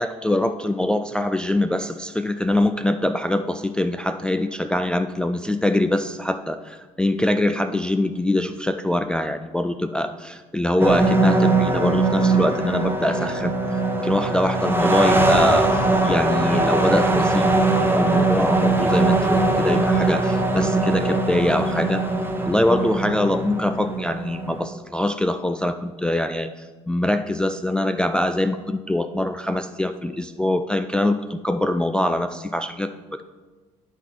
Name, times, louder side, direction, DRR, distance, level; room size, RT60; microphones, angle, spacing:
voice 1, 0.0-13.5 14.0-17.5 17.8-22.0 22.4-33.2, left 1 dB, 5° left, 7 dB, 0.4 m, -23 dB
sound 1, 10.8-24.7, right 2 dB, 15° right, 1.0 m, -21 dB
10.0 x 3.7 x 6.1 m, 1.3 s
hypercardioid pair, 55°, 16 cm